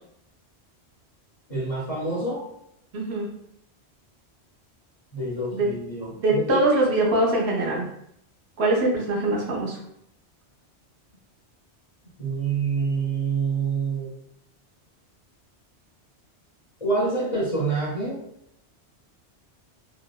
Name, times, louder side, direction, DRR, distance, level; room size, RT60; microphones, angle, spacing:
voice 1, 1.5-2.5 5.1-6.6 12.2-14.1 16.8-18.2, right 4 dB, 45° left, -5 dB, 0.5 m, -27 dB
voice 2, 2.9-3.3 5.5-5.7 6.2-7.9 8.6-9.8, right 2 dB, 70° right, -3 dB, 1.0 m, -22 dB
2.8 x 2.1 x 2.2 m, 0.74 s
omnidirectional pair, 1.2 m